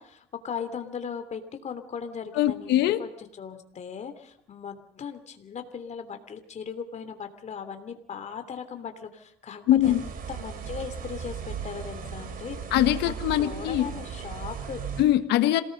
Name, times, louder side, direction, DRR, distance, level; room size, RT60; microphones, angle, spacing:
voice 1, 0.0-12.6 13.0-14.8, left 6 dB, 45° left, 8 dB, 3.1 m, -38 dB
voice 2, 2.3-3.0 9.7-10.0 12.7-13.9 15.0-15.6, left 13 dB, 85° left, 9 dB, 1.5 m, -22 dB
sound 1, 9.8-15.0, right 7 dB, 55° right, 4.3 m, -36 dB
27.0 x 19.0 x 5.4 m, 0.69 s
cardioid pair, 110°, 17 cm